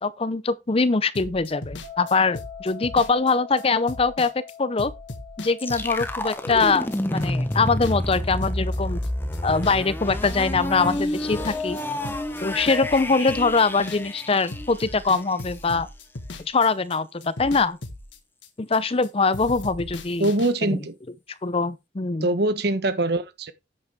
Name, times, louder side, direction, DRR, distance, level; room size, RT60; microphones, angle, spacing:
voice 1, 0.0-4.3 4.6-4.9 5.4-9.0 9.4-11.8 12.4-15.9 16.4-17.8 18.6-20.3 20.6-20.8 21.4-22.3, left 4 dB, 30° left, 0.6 m, -23 dB
sound 1, 1.1-9.1 9.3-9.8 10.1-14.2 14.5-19.1 19.3-20.5, left 2 dB, 85° left, 1.6 m, -38 dB
sound 2, 1.8-12.7, left 9 dB, 35° right, 2.7 m, -46 dB
sound 3, 5.6-15.4, left 1 dB, 10° left, 1.0 m, -29 dB
voice 2, 20.2-20.9 22.2-23.5, right 2 dB, 60° right, 1.2 m, -23 dB
9.7 x 7.8 x 3.6 m
head